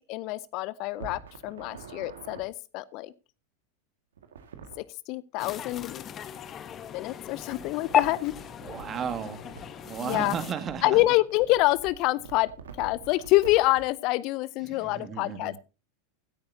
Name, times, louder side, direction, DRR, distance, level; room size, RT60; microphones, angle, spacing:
voice 1, 0.0-3.1 5.1-6.1 6.9-8.3 10.0-10.4 10.8-12.5 12.8-15.6, left 19 dB, 50° left, 19 dB, 0.6 m, -26 dB
sound 1, 0.9-2.4 4.2-4.8 7.5-13.9, right 6 dB, 75° right, 2.0 m, -47 dB
sound 2, 5.4-10.5, left 9 dB, 35° left, 1.0 m, -34 dB
voice 2, 8.6-9.4 9.8-11.0 14.6-15.6, right 7 dB, 30° right, 9 dB, 2.1 m, -34 dB
16.5 x 10.5 x 2.8 m, 0.31 s
figure-of-eight pair, 90°, 0 cm